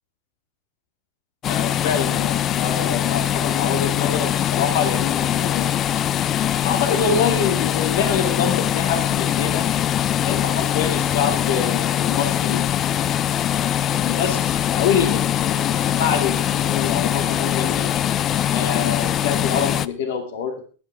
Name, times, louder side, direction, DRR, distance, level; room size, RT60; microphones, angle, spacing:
sound 1, 1.4-19.9, left 10 dB, 30° left, 0.5 m, -22 dB
voice 1, 1.5-5.7 6.6-9.7 10.2-12.8 13.8-17.9 18.5-20.7, left 6 dB, 75° left, 6 dB, 2.6 m, -26 dB
21.0 x 8.9 x 3.6 m, 0.38 s
supercardioid pair, 140°, 0 cm